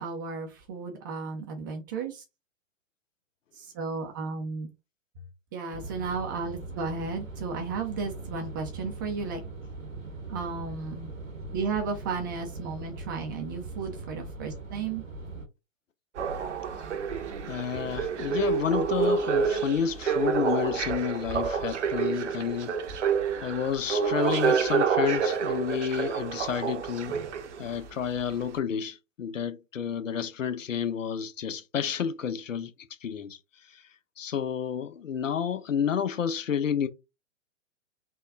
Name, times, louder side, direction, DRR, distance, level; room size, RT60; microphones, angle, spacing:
voice 1, 0.0-2.2 3.6-4.7 5.5-9.4 10.3-11.1 11.5-15.0, right 4 dB, 15° right, 0.4 m, -34 dB
sound 1, 5.7-15.5, right 3 dB, 90° right, 1.0 m, -40 dB
sound 2, 16.2-27.8 28.4-28.5, right 6 dB, 60° right, 0.7 m, -28 dB
voice 2, 17.5-22.7 23.4-27.2 27.6-32.7 33.0-33.4 34.2-36.9, left 8 dB, 75° left, 0.6 m, -30 dB
3.6 x 2.3 x 3.5 m
figure-of-eight pair, 110°, 39 cm